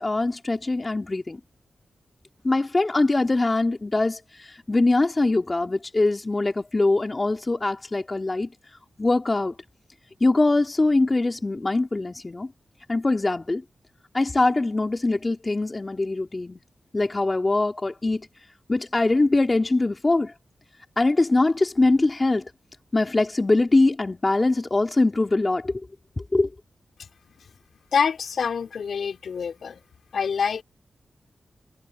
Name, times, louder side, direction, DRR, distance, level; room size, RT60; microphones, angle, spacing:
voice 1, 0.0-1.4 2.4-4.2 4.7-8.5 9.0-9.5 10.2-12.5 12.9-13.6 14.1-16.6 16.9-18.3 18.7-20.3 21.0-22.4 22.9-25.7 26.3-26.5, left 2 dB, 35° left, 3.0 m, -22 dB
voice 2, 27.9-29.8 30.1-30.6, left 6 dB, 80° left, 4.3 m, -26 dB
cardioid pair, 50°, 0 cm